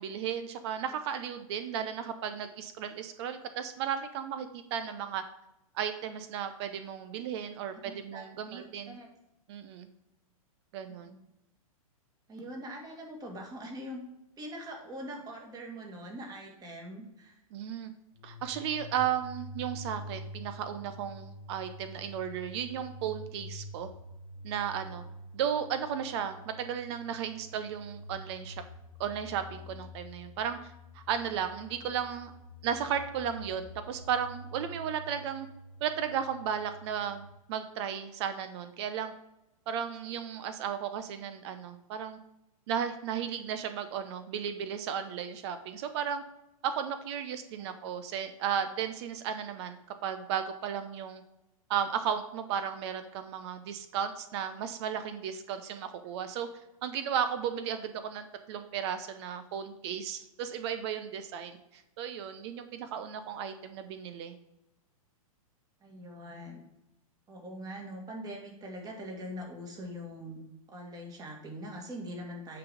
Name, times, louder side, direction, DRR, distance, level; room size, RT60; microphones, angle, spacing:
voice 1, 0.0-5.2 5.7-9.0 9.5-9.9 10.7-11.1 17.5-17.9 18.2-23.9 24.4-25.0 25.3-28.5 29.0-32.3 32.6-35.5 35.8-39.1 39.7-42.2 42.7-46.2 46.6-51.2 51.7-56.5 56.8-64.3, right 8 dB, 50° right, 9 dB, 0.7 m, -34 dB
voice 2, 7.8-9.1 10.9-11.2 12.3-14.0 14.4-17.4 47.6-47.7 65.8-66.6 67.3-70.4 70.7-72.6, equal, 20° right, 1 dB, 1.9 m, -43 dB
sound 1, 18.1-37.3, left 1 dB, 85° left, 1.0 m, -47 dB
8.6 x 4.1 x 4.9 m, 0.90 s
hypercardioid pair, 120°, 19 cm